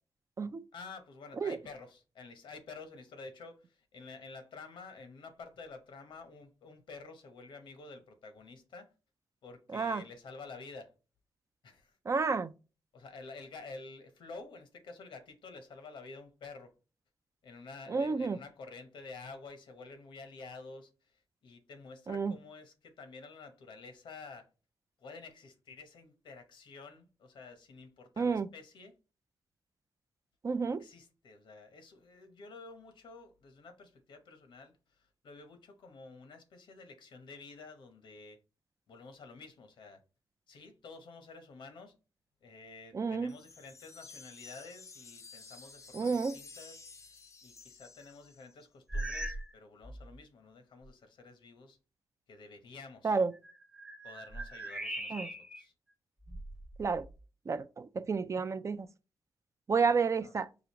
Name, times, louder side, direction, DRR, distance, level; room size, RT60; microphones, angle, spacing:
voice 1, 0.7-8.9 9.4-10.9 11.6-11.9 12.9-16.7 17.4-24.5 25.0-29.0 30.8-38.4 38.9-40.0 40.5-41.9 42.4-46.9 47.4-51.8 52.3-53.2 54.0-55.7 60.2-60.3, left 4 dB, 80° left, 0.9 m, -50 dB
voice 2, 9.7-10.0 12.1-12.5 17.9-18.4 22.1-22.3 28.2-28.5 30.4-30.8 42.9-43.3 45.9-46.4 53.0-53.3 55.1-55.3 56.8-57.1 57.5-58.9 59.7-60.5, right 5 dB, 40° right, 0.3 m, -30 dB
sound 1, 43.3-48.7, left 4 dB, 40° left, 0.5 m, -52 dB
sound 2, 48.9-49.5 49.8-50.2 50.8-50.9 53.3-55.7 56.2-57.2, right 1 dB, 10° right, 0.7 m, -40 dB
5.0 x 2.5 x 2.9 m
cardioid pair, 55°, 8 cm